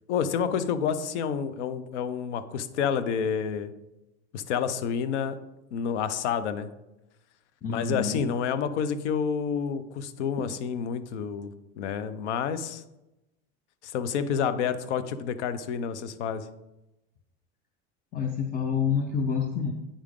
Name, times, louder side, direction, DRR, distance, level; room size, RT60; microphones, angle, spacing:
voice 1, 0.1-3.7 4.3-5.4 5.7-6.7 7.7-11.5 11.8-12.8 13.8-16.5, left 7 dB, 85° left, 13 dB, 0.7 m, -29 dB
voice 2, 7.6-8.2 18.1-19.7, left 6 dB, 25° left, 5 dB, 0.6 m, -28 dB
8.7 x 4.9 x 3.6 m, 0.95 s
supercardioid pair, 115°, 34 cm